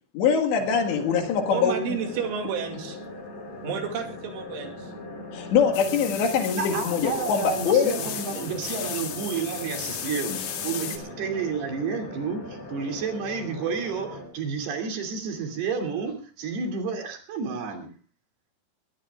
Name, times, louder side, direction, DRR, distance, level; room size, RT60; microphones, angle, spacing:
voice 1, 0.1-1.8 5.3-8.0, left 6 dB, 70° left, 5 dB, 3.9 m, -23 dB
sound 1, 0.6-14.3, left 2 dB, 35° left, 6.0 m, -40 dB
voice 2, 1.5-3.0 3.6-4.9, right 6 dB, 80° right, 4 dB, 4.7 m, -31 dB
sound 2, 5.7-11.0, left 8 dB, 90° left, 5.0 m, -35 dB
voice 3, 6.6-17.9, right 5 dB, 60° right, 4 dB, 4.5 m, -31 dB
23.0 x 17.5 x 2.4 m, 0.36 s
omnidirectional pair, 5.5 m